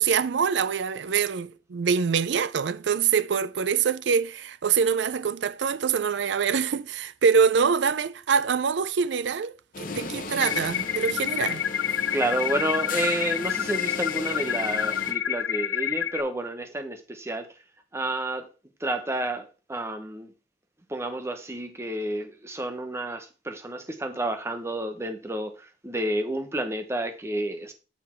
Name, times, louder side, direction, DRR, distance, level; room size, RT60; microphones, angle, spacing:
voice 1, 0.0-11.7, right 6 dB, 75° right, 0.4 m, -25 dB
sound 1, 9.7-15.1, left 4 dB, 50° left, 0.9 m, -36 dB
sound 2, 10.4-16.2, left 9 dB, 90° left, 0.4 m, -28 dB
voice 2, 12.1-17.5 17.9-18.5 18.8-20.3 20.9-27.7, right 1 dB, 15° right, 0.9 m, -30 dB
6.7 x 6.1 x 4.4 m
head